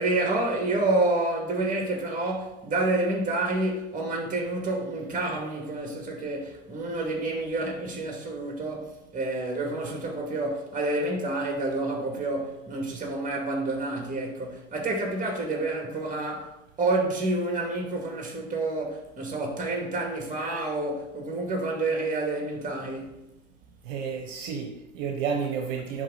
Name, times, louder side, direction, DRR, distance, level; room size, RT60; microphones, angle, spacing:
voice 1, 0.0-16.5 16.8-23.2, right 2 dB, 20° right, 2.2 m, -29 dB
voice 2, 23.8-26.0, right 6 dB, 65° right, 1.0 m, -31 dB
10.0 x 3.7 x 4.0 m
hypercardioid pair, 90°, 40 cm